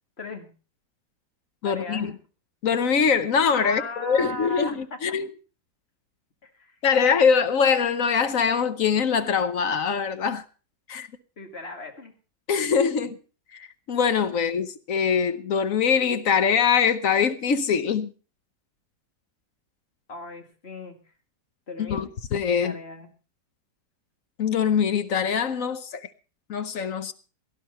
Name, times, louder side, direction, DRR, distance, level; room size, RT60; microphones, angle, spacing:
voice 1, 0.2-0.5 1.6-2.1 3.6-5.0 6.4-6.8 11.4-12.1 20.1-21.0 21.7-22.1 22.6-23.1, left 2 dB, 35° left, 2.2 m, -37 dB
voice 2, 1.6-2.1 2.6-5.3 6.8-10.4 10.9-11.1 12.5-13.2 13.5-18.1 21.8-22.8 24.4-26.1 26.5-27.1, left 6 dB, 60° left, 1.1 m, -23 dB
17.5 x 11.5 x 4.2 m
omnidirectional pair, 1.8 m